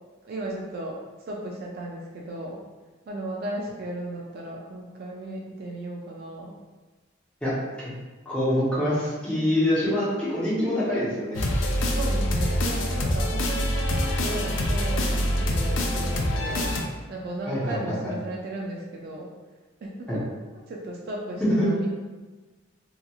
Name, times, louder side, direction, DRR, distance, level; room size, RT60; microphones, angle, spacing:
voice 1, 0.2-1.0 1.3-2.6 3.1-6.5 11.9-16.7 17.1-19.3 19.8-20.3 20.7-22.0, right 1 dB, 50° right, -2 dB, 0.3 m, -35 dB
voice 2, 7.4-7.9 8.2-11.4 17.5-18.1 20.1-20.2 21.6-21.7, left 1 dB, 5° left, -11 dB, 0.9 m, -25 dB
sound 1, 11.3-16.8, equal, 75° left, 0.4 m, -25 dB
2.9 x 2.4 x 2.3 m, 1.3 s
head